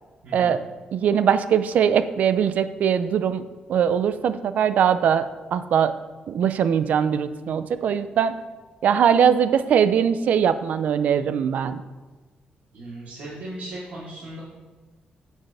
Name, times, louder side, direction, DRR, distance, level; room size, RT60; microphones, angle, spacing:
voice 1, 0.2-0.6 12.7-14.4, right 1 dB, 75° right, -10 dB, 3.3 m, -37 dB
voice 2, 0.9-3.4 3.7-5.9 6.3-8.3 8.8-11.8, right 8 dB, 60° right, 12 dB, 0.5 m, -21 dB
9.1 x 9.0 x 3.4 m, 1.3 s
wide cardioid pair, 165°, 3 cm